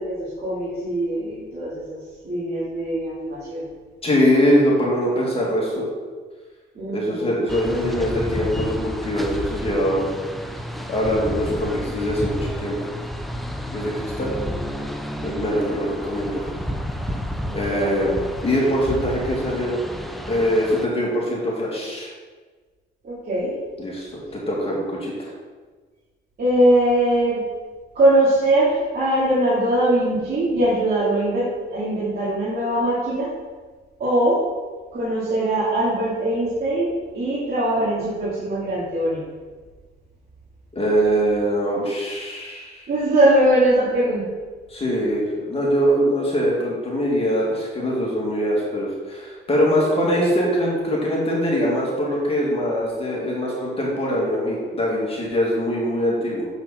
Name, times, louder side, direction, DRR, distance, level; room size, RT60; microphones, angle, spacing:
voice 1, 0.0-2.0 2.2-3.7 6.7-7.3 17.7-18.3 23.0-23.5 26.4-27.4 27.9-33.3 34.0-34.4 34.9-39.2 42.9-44.2, right 1 dB, 50° right, -10 dB, 2.5 m, -21 dB
voice 2, 4.0-5.9 6.9-10.1 10.9-12.7 13.7-14.3 15.2-16.5 17.5-18.1 18.4-19.8 20.3-22.1 23.8-25.3 40.7-42.9 44.7-56.5, equal, 30° left, -4 dB, 2.5 m, -22 dB
sound 1, 7.5-20.9, equal, ahead, 0.6 m, -31 dB
7.1 x 6.1 x 4.4 m, 1.4 s
cardioid pair, 90°, 20 cm